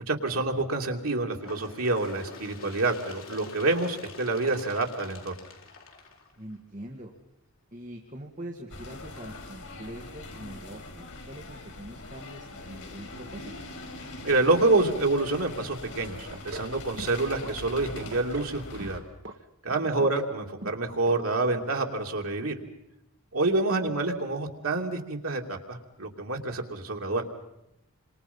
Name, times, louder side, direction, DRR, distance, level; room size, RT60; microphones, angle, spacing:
voice 1, 0.1-5.3 14.2-19.0 19.6-22.6 23.3-27.3, right 2 dB, 85° right, 2 dB, 2.9 m, -27 dB
Bird, 1.4-6.8 7.7-7.8 8.2-8.3 9.2-9.3 10.2-10.3 11.2-11.3, left 3 dB, 70° left, 4.1 m, -46 dB
voice 2, 6.4-7.1 7.7-13.5 20.0-20.1, right 1 dB, 35° right, 1 dB, 2.1 m, -43 dB
sound 1, 8.7-19.0, left 2 dB, 85° left, 5.0 m, -42 dB
sound 2, 16.3-16.7 17.0-17.5 17.9-18.5 18.8-19.4 19.7-20.4 20.6-20.8 21.1-21.2 21.5-21.6, right 1 dB, 55° right, 1.5 m, -40 dB
28.5 x 26.0 x 5.6 m, 0.84 s
head